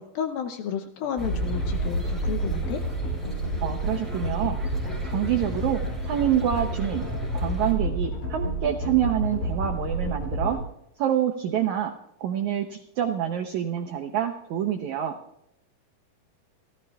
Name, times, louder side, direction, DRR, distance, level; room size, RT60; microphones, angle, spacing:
voice 1, 0.0-2.8, left 8 dB, 75° left, 6 dB, 2.4 m, -32 dB
sound 1, 1.2-10.6, right 1 dB, 50° left, 4.6 m, -29 dB
sound 2, 1.2-7.7, right 3 dB, ahead, 5.8 m, -37 dB
voice 2, 3.6-4.6 5.0-7.1 7.3-10.6 11.0-11.9 12.2-15.2, right 10 dB, 85° right, 5 dB, 1.6 m, -27 dB
29.5 x 14.5 x 2.4 m, 0.80 s
omnidirectional pair, 4.5 m